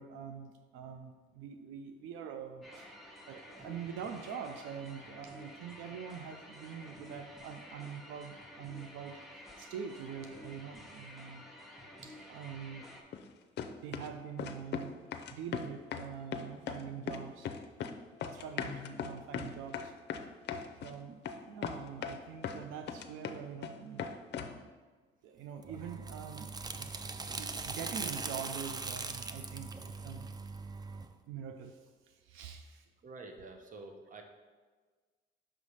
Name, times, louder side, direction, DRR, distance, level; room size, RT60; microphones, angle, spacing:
voice 1, 0.0-2.9 3.3-11.5 12.0-12.9 13.8-15.0 15.3-17.5 18.3-19.9 20.8-21.2 21.5-24.1 24.5-24.7 25.2-26.9 27.2-30.3 31.2-32.9, right 7 dB, 90° right, 6 dB, 0.5 m, -44 dB
sound 1, 2.6-13.0, left 1 dB, ahead, 0.9 m, -51 dB
sound 2, 13.1-13.3 13.6-14.1 14.4-14.9 15.1-16.1 16.3-16.8 17.1-17.9 18.2-20.9 21.2-21.4 21.6-22.6 22.9-23.7 24.0-24.6, left 7 dB, 60° left, 0.5 m, -38 dB
sound 3, 25.6-31.1, right 4 dB, 20° right, 0.4 m, -41 dB
voice 2, 33.0-34.2, right 3 dB, 40° right, 4 dB, 0.9 m, -48 dB
6.1 x 3.3 x 5.4 m, 1.4 s
cardioid pair, 90°, 20 cm